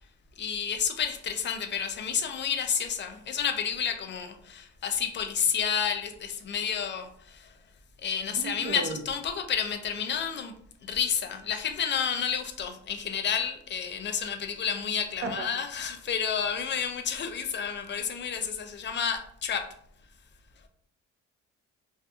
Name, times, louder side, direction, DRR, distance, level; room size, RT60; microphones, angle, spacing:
voice 1, 0.4-7.5 8.0-10.5 10.8-19.7, left 7 dB, 40° left, 7 dB, 0.4 m, -30 dB
voice 2, 8.3-9.0 15.2-15.5, right 4 dB, 45° right, 4 dB, 0.4 m, -34 dB
2.6 x 2.4 x 2.3 m, 0.65 s
cardioid pair, 90°, 30 cm